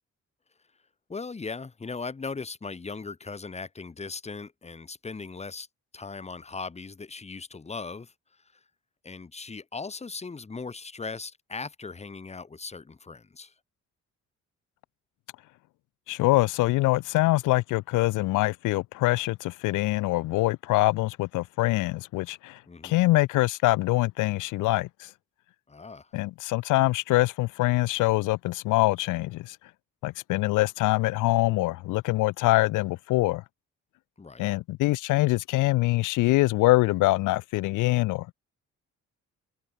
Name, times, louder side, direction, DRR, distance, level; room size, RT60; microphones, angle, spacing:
voice 1, 1.1-5.7 5.9-8.1 9.0-13.5 22.7-22.9 25.7-26.1 34.2-34.5, left 4 dB, 20° left, 1.3 m, -38 dB
voice 2, 16.1-25.1 26.1-29.6 30.0-33.4 34.4-38.3, left 19 dB, 85° left, 0.6 m, -24 dB
cardioid pair, 90°, 30 cm